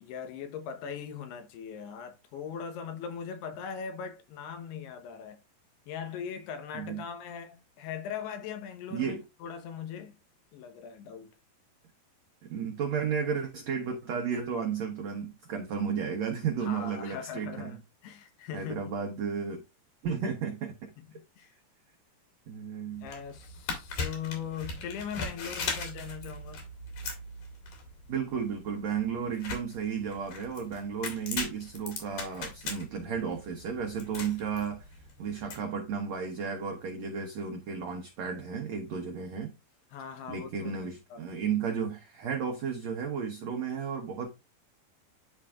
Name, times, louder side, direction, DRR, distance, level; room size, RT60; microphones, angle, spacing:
voice 1, 0.0-5.4 5.9-10.1 10.5-11.3 16.6-18.8 21.1-21.5 23.0-26.6 39.9-41.2, left 7 dB, 85° left, 3.1 m, -40 dB
voice 2, 8.9-9.2 12.4-17.8 18.5-19.6 20.0-20.9 22.5-23.1 28.1-34.9 35.2-39.5 40.3-44.3, right 6 dB, 85° right, 1.5 m, -33 dB
sound 1, 22.9-35.6, left 4 dB, 60° left, 3.6 m, -39 dB
10.5 x 4.4 x 2.4 m
omnidirectional pair, 4.6 m